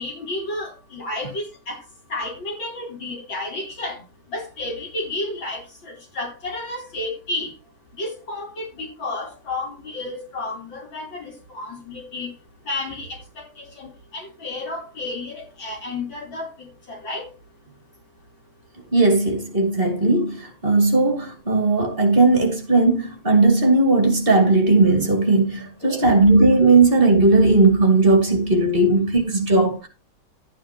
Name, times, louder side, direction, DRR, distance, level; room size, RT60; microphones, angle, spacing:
voice 1, 0.0-1.8 2.1-4.0 4.3-7.5 8.0-12.3 12.7-16.5 16.9-17.3 25.8-26.0, left 2 dB, 60° left, 4.5 m, -31 dB
voice 2, 18.9-29.9, right 2 dB, 25° right, 2.4 m, -17 dB
12.5 x 9.3 x 2.9 m
omnidirectional pair, 2.4 m